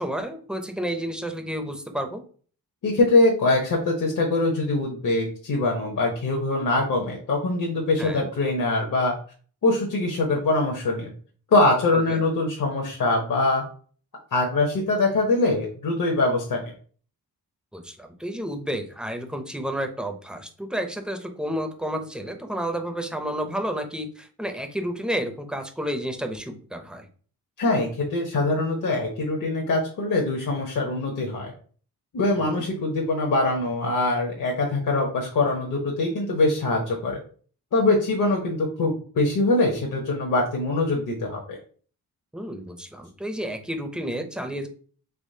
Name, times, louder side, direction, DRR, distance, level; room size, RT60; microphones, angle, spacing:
voice 1, 0.0-2.2 8.0-8.3 11.9-12.2 17.7-27.1 32.4-32.6 42.3-44.7, equal, ahead, 5 dB, 0.5 m, -31 dB
voice 2, 2.8-9.1 9.6-11.1 11.5-13.6 14.3-16.7 27.6-31.5 32.1-37.2 37.7-41.6, left 2 dB, 55° left, -1 dB, 0.8 m, -23 dB
3.6 x 3.0 x 2.6 m, 0.43 s
wide cardioid pair, 105°, 37 cm